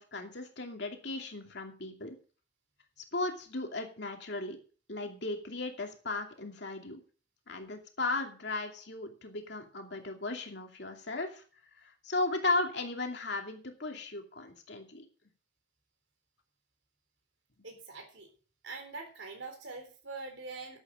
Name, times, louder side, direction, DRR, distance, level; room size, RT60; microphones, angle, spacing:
voice 1, 0.0-2.2 3.1-4.6 4.9-7.0 7.5-11.4 11.8-15.0, left 2 dB, 65° left, 3 dB, 2.6 m, -36 dB
voice 2, 17.6-18.3 18.6-20.8, right 3 dB, 85° right, 4 dB, 4.0 m, -44 dB
11.5 x 8.4 x 6.3 m, 0.39 s
head